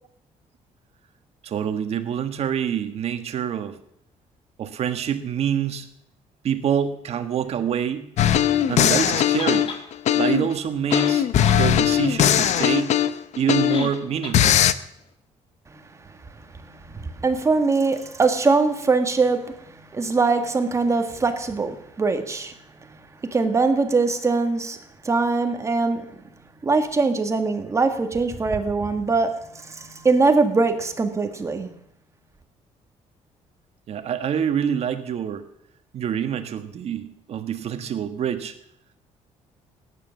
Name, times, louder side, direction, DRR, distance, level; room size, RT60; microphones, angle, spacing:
voice 1, 1.4-3.8 4.6-5.9 6.4-8.0 8.7-9.7 10.1-11.3 11.5-12.9 13.3-14.6 33.9-35.4 35.9-38.5, right 8 dB, 55° right, 8 dB, 1.6 m, -26 dB
sound 1, 8.2-10.5 10.9-13.9 14.3-14.7, left 10 dB, 60° left, 0.8 m, -19 dB
sound 2, 9.4-9.8 10.6-10.7 10.9-11.6 12.0-12.1 13.7-14.0 14.2-14.4, left 4 dB, 45° left, 2.3 m, -33 dB
voice 2, 16.6-19.5 19.9-22.5 23.3-24.8 25.0-26.0 26.6-31.7, right 3 dB, 20° right, 7 dB, 1.7 m, -22 dB
17.0 x 9.9 x 7.2 m, 0.73 s
cardioid pair, 140°, 13 cm